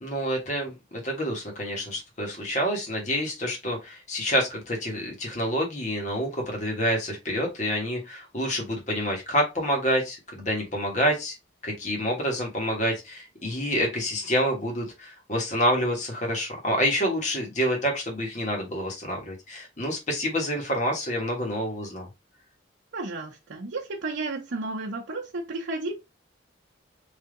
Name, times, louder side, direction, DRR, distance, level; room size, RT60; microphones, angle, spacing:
voice 1, 0.0-11.3 11.6-22.1, equal, 40° left, 1.3 m, -28 dB
voice 2, 22.9-25.9, right 2 dB, 80° right, 0.8 m, -32 dB
3.4 x 2.7 x 3.7 m
head